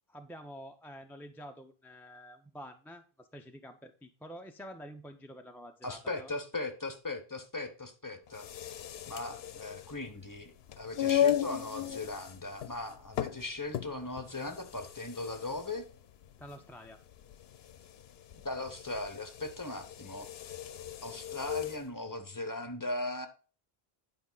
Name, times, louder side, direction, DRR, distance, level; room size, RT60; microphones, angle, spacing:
voice 1, 0.1-6.3 16.4-17.0, equal, 5° left, 4 dB, 0.4 m, -48 dB
voice 2, 5.8-8.8 9.1-15.9 18.4-20.6 21.0-23.3, left 2 dB, 20° left, 8 dB, 0.8 m, -39 dB
sound 1, 8.3-21.8, left 10 dB, 80° left, 0.8 m, -36 dB
9.7 x 5.2 x 3.9 m, 0.38 s
omnidirectional pair, 1.0 m